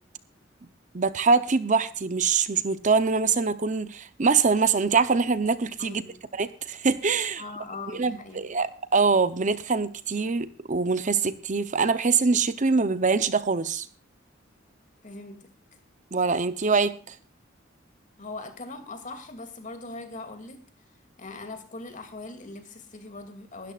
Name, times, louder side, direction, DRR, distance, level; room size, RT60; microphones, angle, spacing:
voice 1, 0.9-6.0 6.3-7.4 7.9-8.7 8.9-13.9 16.1-17.2, right 4 dB, 40° right, 13 dB, 0.7 m, -24 dB
voice 2, 5.8-6.2 7.4-8.4 15.0-15.4 18.2-20.6 21.2-23.7, left 3 dB, 40° left, 6 dB, 2.5 m, -40 dB
20.5 x 13.0 x 2.4 m, 0.37 s
head